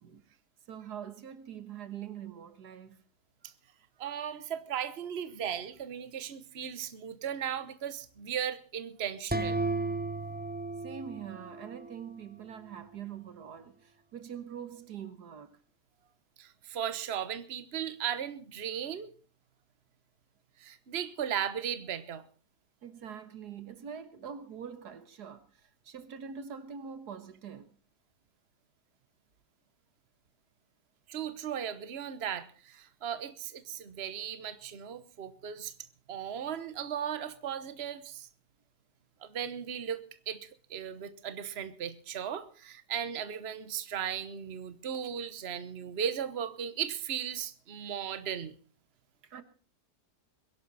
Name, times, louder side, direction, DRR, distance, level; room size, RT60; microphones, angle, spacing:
voice 1, 0.7-3.0 3.4-3.5 10.8-15.6 22.8-27.8 49.2-49.4, right 8 dB, 85° right, 1.9 m, -44 dB
voice 2, 4.0-9.6 16.4-19.1 20.6-22.2 31.1-35.7 36.1-38.3 39.2-48.5, right 9 dB, 45° right, 1.3 m, -36 dB
sound 1, 9.3-12.1, right 3 dB, 15° right, 0.3 m, -34 dB
22.5 x 11.0 x 4.1 m
omnidirectional pair, 1.7 m